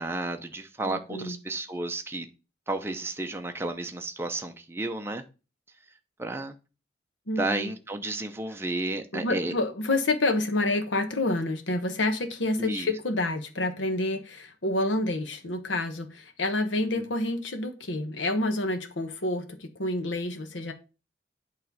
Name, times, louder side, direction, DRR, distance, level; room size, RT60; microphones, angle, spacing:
voice 1, 0.0-2.3 2.7-5.2 6.2-6.5 7.4-9.5 12.6-12.9 16.9-17.1, right 2 dB, 15° right, 0.6 m, -32 dB
voice 2, 0.8-1.4 7.3-7.7 9.1-20.7, left 2 dB, 80° left, 1.1 m, -28 dB
8.4 x 3.2 x 5.2 m
head